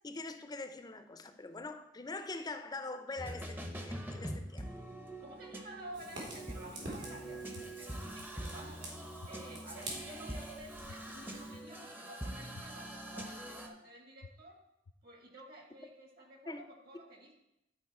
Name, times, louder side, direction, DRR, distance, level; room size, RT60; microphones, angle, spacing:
voice 1, 0.0-4.7 16.5-16.6, left 3 dB, 25° left, 0.5 m, -43 dB
sound 1, 3.2-13.7, right 1 dB, 10° right, 0.7 m, -44 dB
voice 2, 5.2-8.9 9.3-14.6 15.0-17.3, right 1 dB, 55° right, 1.9 m, -51 dB
Fire, 5.9-11.6, right 1 dB, 75° right, 2.6 m, -48 dB
sound 2, 7.5-7.6 8.2-8.3 9.2-9.3 9.8-9.9 10.9-11.0 11.5-11.6 12.5-12.6 13.2-13.3 14.2-14.3 14.8-14.9, left 4 dB, 85° left, 0.5 m, -50 dB
11.0 x 4.4 x 4.2 m
head